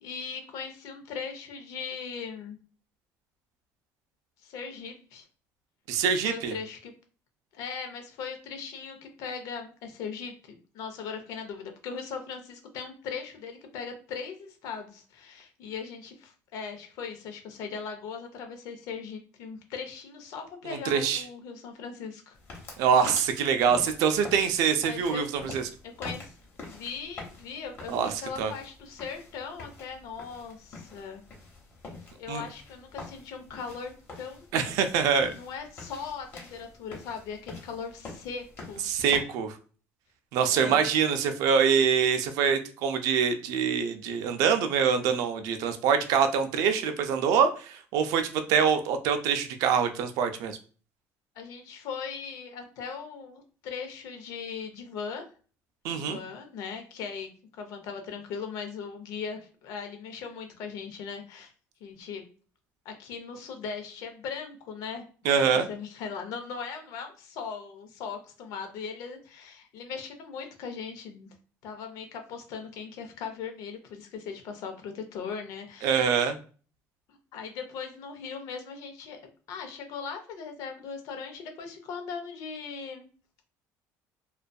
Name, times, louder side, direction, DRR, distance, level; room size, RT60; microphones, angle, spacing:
voice 1, 0.0-2.6 4.4-5.2 6.2-6.9 7.5-22.4 24.9-25.2 26.0-26.3 26.6-31.2 32.1-33.9 34.2-34.5 35.3-38.8 40.5-40.8 51.4-55.2 55.9-61.5 61.8-62.3 62.8-65.0 65.3-71.3 71.6-76.1 77.3-79.2 79.5-83.1, left 6 dB, 70° left, 5 dB, 0.6 m, -39 dB
voice 2, 5.9-6.5 20.7-21.2 22.8-25.6 27.9-28.1 28.4-28.5 32.3-32.4 34.5-35.3 38.8-39.6 40.3-50.6 55.8-56.2 65.2-65.7 75.8-76.4, right 7 dB, 75° right, 8 dB, 0.4 m, -25 dB
sound 1, 22.3-39.2, left 3 dB, 35° left, 0.9 m, -46 dB
2.5 x 2.3 x 2.2 m, 0.39 s
cardioid pair, 150°, 6 cm